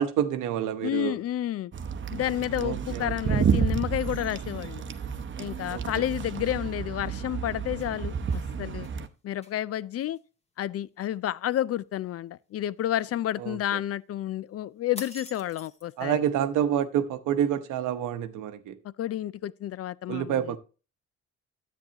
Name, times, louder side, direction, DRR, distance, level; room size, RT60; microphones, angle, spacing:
voice 1, 0.0-1.2 2.6-3.4 5.7-6.0 13.4-13.6 16.0-18.8 20.1-20.6, right 10 dB, 90° right, 0.9 m, -28 dB
voice 2, 0.8-1.7 2.1-4.8 5.4-8.9 9.2-10.2 10.6-16.2 18.8-20.6, left 12 dB, 50° left, 0.4 m, -30 dB
sound 1, 1.7-9.1, right 6 dB, 40° right, 0.8 m, -30 dB
sound 2, 7.6-8.4 8.8-9.0 9.4-9.6 10.0-10.2 15.0-16.0, left 2 dB, 20° left, 1.5 m, -45 dB
10.5 x 8.2 x 2.8 m
cardioid pair, 90°, 30 cm